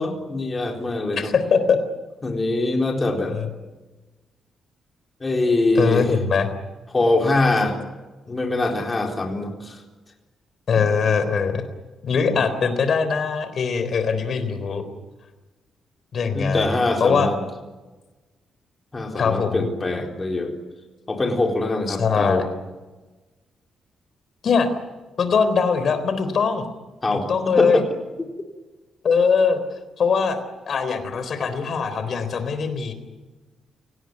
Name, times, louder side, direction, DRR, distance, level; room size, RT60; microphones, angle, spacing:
voice 1, 0.0-1.3 2.2-3.3 5.2-6.1 6.9-7.8 8.3-9.8 10.8-10.9 12.3-12.4 16.3-17.4 18.9-20.5 21.1-22.5 27.0-27.3 27.6-27.9, left 2 dB, 20° left, 2 dB, 4.2 m, -23 dB
voice 2, 1.2-1.8 3.3-3.5 5.8-6.5 10.7-11.6 12.0-14.8 16.1-16.7 17.0-17.3 19.1-19.7 21.9-22.4 24.4-24.7 25.2-26.7 27.1-27.8 29.0-29.6 30.0-30.4 30.7-32.9, left 5 dB, 45° left, 10 dB, 3.8 m, -21 dB
29.0 x 18.5 x 9.6 m, 1.2 s
cardioid pair, 165°, 0 cm